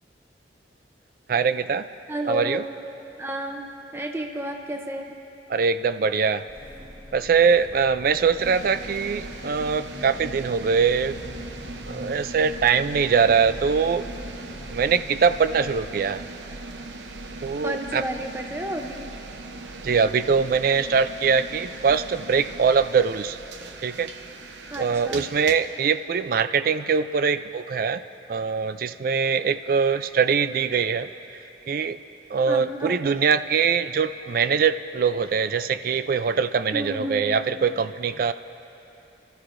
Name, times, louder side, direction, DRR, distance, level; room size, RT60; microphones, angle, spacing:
voice 1, 1.3-1.9 2.3-2.6 5.5-6.4 7.1-11.2 11.9-14.0 14.7-16.2 17.4-18.0 19.8-23.4 23.8-24.1 24.8-28.0 28.3-31.1 31.7-32.0 32.3-38.3, right 6 dB, 50° right, 12 dB, 0.3 m, -22 dB
voice 2, 2.1-2.7 3.2-3.7 3.9-5.1 17.6-19.1 24.7-25.2 32.5-33.0 36.7-37.4, right 1 dB, 15° right, 3 dB, 0.6 m, -31 dB
sound 1, 6.5-15.8, equal, 10° left, 3.5 m, -43 dB
sound 2, 8.4-25.5, right 2 dB, 85° right, 0.8 m, -39 dB
28.5 x 13.0 x 2.6 m, 2.9 s
head